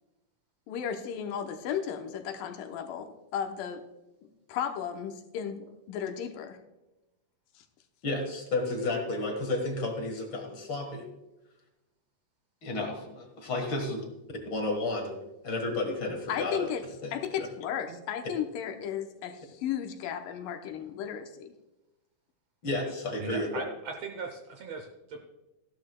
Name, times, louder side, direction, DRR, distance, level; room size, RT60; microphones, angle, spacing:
voice 1, 0.7-3.8 4.5-6.6 16.3-16.8 17.1-21.5, left 8 dB, 85° left, 5 dB, 2.5 m, -34 dB
voice 2, 8.0-11.1 12.6-13.0 13.5-14.0 14.5-15.2 15.4-16.7 17.0-17.5 22.6-23.5, left 2 dB, 45° left, 3 dB, 1.8 m, -31 dB
voice 3, 23.2-25.2, right 4 dB, 70° right, 3 dB, 1.6 m, -39 dB
15.5 x 11.5 x 2.3 m, 1.0 s
omnidirectional pair, 3.9 m